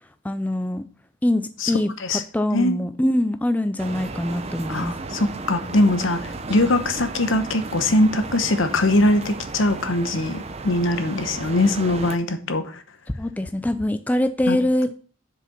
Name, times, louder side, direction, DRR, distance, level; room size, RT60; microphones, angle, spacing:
voice 1, 0.2-0.8 1.2-1.9 2.3-4.9 13.2-14.9, left 1 dB, 10° left, 0.4 m, -23 dB
sound 1, 3.8-12.2, right 3 dB, 30° right, 0.6 m, -34 dB
voice 2, 4.7-12.8 14.5-14.6, left 1 dB, 70° left, 0.9 m, -21 dB
6.7 x 5.0 x 5.8 m
head